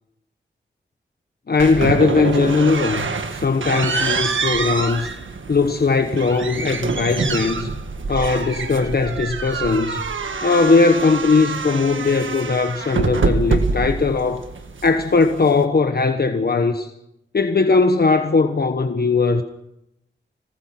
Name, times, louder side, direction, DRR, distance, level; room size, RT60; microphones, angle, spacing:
voice 1, 1.5-5.1 5.5-7.7 8.1-10.0 10.4-14.4 14.8-16.9 17.3-19.4, left 4 dB, 55° left, 6 dB, 1.2 m, -19 dB
sound 1, 1.6-15.6, right 4 dB, 90° right, 1.6 m, -26 dB
26.0 x 19.0 x 6.0 m, 0.86 s
wide cardioid pair, 75°, 19 cm